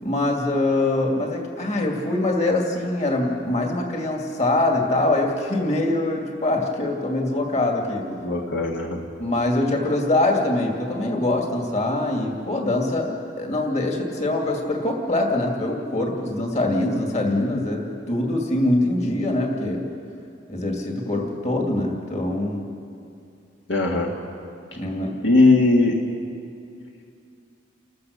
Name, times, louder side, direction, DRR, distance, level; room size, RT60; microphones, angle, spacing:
voice 1, 0.0-8.0 9.2-13.1 13.4-19.8 20.5-22.7 24.8-25.1, left 2 dB, 35° left, 1 dB, 2.6 m, -23 dB
voice 2, 8.2-9.0 23.7-24.1 25.2-26.0, left 3 dB, 65° left, 0 dB, 1.8 m, -18 dB
30.0 x 14.0 x 6.7 m, 2.5 s
head